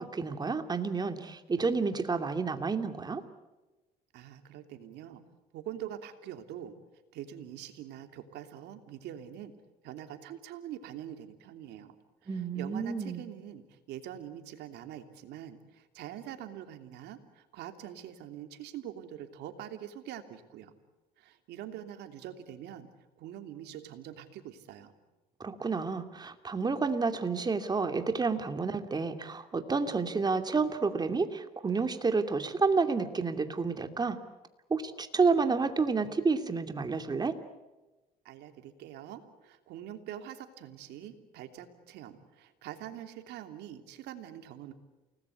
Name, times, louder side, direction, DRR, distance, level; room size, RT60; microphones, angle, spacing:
voice 1, 0.0-3.2 12.3-13.2 25.4-34.2 34.7-37.3, right 4 dB, 25° right, 7 dB, 2.6 m, -30 dB
voice 2, 4.1-5.2 5.5-6.7 7.1-9.5 9.8-11.9 12.2-20.7 21.2-22.9 23.2-24.9 38.2-44.7, right 11 dB, 85° right, 7 dB, 3.0 m, -44 dB
29.5 x 19.5 x 8.4 m, 1.1 s
cardioid pair, 110°, 17 cm